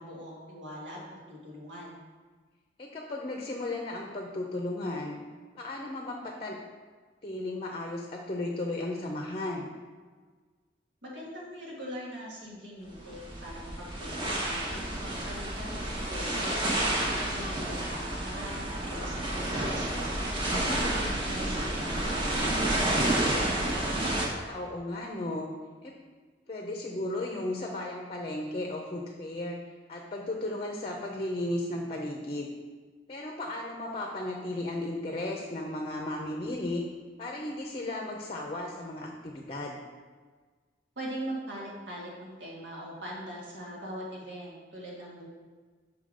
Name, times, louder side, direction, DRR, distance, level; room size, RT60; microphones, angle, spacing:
voice 1, 0.0-2.0 11.0-20.2 20.5-23.6 41.0-45.3, equal, 90° right, -4 dB, 1.8 m, -41 dB
voice 2, 2.8-5.2 5.6-6.6 7.2-9.7 24.4-25.5 25.8-25.9 26.5-29.6 29.9-32.5 33.1-36.8 37.2-39.8, left 1 dB, 35° left, 0 dB, 0.6 m, -35 dB
sound 1, 12.9-24.2, right 1 dB, 30° right, 1.0 m, -30 dB
6.0 x 3.7 x 4.9 m, 1.4 s
head